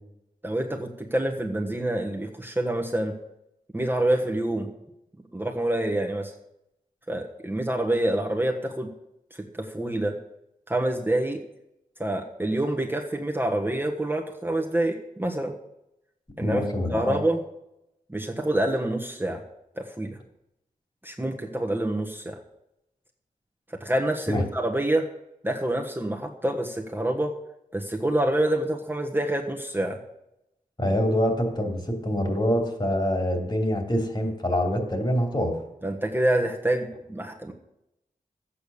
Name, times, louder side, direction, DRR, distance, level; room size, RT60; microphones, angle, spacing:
voice 1, 0.4-3.1 3.7-4.7 5.3-6.3 7.1-8.9 9.3-10.1 10.7-11.4 12.0-15.5 16.4-16.6 16.9-17.4 18.1-19.4 19.8-20.2 21.0-22.4 23.7-25.1 25.4-27.3 27.7-30.0 35.8-37.5, right 1 dB, 15° right, 1 dB, 1.4 m, -27 dB
voice 2, 16.4-17.2 24.3-24.4 30.8-35.5, equal, 30° left, 3 dB, 3.0 m, -25 dB
11.5 x 8.5 x 7.0 m, 0.85 s
cardioid pair, 55°, 15 cm